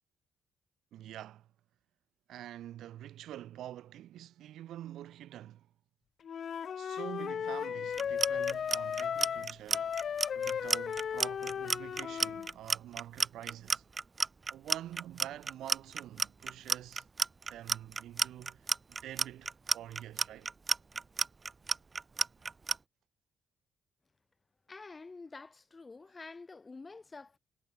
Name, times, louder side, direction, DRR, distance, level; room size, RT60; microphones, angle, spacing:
voice 1, 0.9-1.5 2.3-5.7 6.8-10.0 10.3-13.8 14.5-17.0 17.5-20.5, right 12 dB, 80° right, 6.2 m, -47 dB
Wind instrument woodwind instrument, 6.2-12.5, left 8 dB, 55° left, 1.0 m, -35 dB
Clock, 7.9-22.8, right 4 dB, 30° right, 0.9 m, -31 dB
voice 2, 24.7-27.4, left 3 dB, 25° left, 5.2 m, -48 dB
cardioid pair, 90°, 0 cm